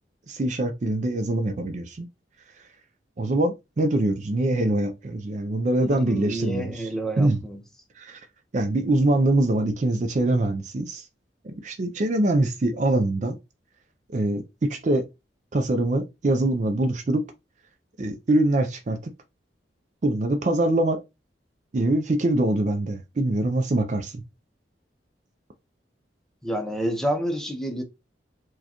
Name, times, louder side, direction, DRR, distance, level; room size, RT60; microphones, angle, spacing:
voice 1, 0.3-2.1 3.2-6.9 7.2-7.4 8.0-8.2 8.5-11.1 11.4-13.4 14.1-15.1 15.5-17.3 18.0-19.1 20.0-21.0 21.7-24.2, right 2 dB, 40° right, 0.4 m, -24 dB
voice 2, 5.8-7.6 26.4-27.8, right 1 dB, 5° left, 0.6 m, -29 dB
4.6 x 2.2 x 2.9 m
head